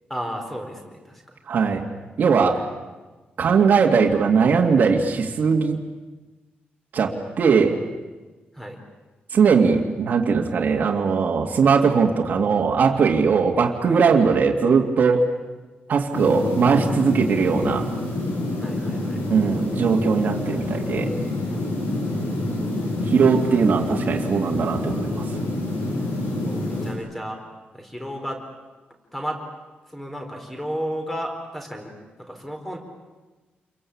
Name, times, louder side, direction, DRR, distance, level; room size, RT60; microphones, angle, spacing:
voice 1, 0.1-1.2 8.5-8.8 18.6-19.2 26.4-27.4 27.7-28.4 29.1-29.4 29.9-31.9 32.3-32.8, equal, 5° left, 3 dB, 4.5 m, -32 dB
voice 2, 1.5-1.8 2.2-2.6 3.4-5.8 6.9-7.8 9.3-15.3 15.9-17.9 19.3-21.1 23.1-25.2, right 5 dB, 55° right, 0 dB, 2.4 m, -19 dB
sound 1, 16.1-26.9, left 2 dB, 85° left, 7.9 m, -27 dB
29.0 x 23.0 x 8.7 m, 1.2 s
wide cardioid pair, 170°, 4 cm